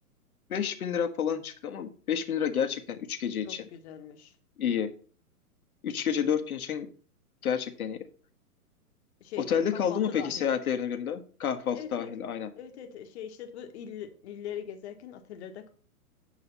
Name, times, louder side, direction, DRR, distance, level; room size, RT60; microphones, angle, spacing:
voice 1, 0.5-3.7 4.6-4.9 5.8-6.9 7.4-8.0 9.4-12.5, left 8 dB, 70° left, 1.6 m, -29 dB
voice 2, 3.4-4.3 9.2-10.5 11.7-12.1 12.6-15.7, left 8 dB, 45° left, 1.7 m, -41 dB
9.5 x 5.6 x 5.5 m
hypercardioid pair, 135°, 46 cm